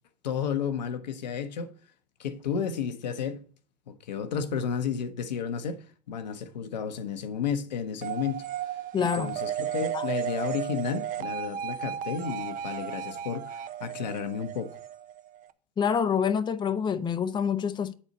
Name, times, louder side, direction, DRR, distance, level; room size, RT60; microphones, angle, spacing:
voice 1, 0.2-1.7 2.2-3.4 3.9-14.8, left 7 dB, 85° left, 0.9 m, -32 dB
sound 1, 8.0-15.5, right 9 dB, 40° right, 0.6 m, -34 dB
voice 2, 8.9-9.4 9.9-10.0 15.8-17.9, left 7 dB, 20° left, 0.6 m, -27 dB
8.9 x 4.2 x 5.2 m
hypercardioid pair, 80°, 21 cm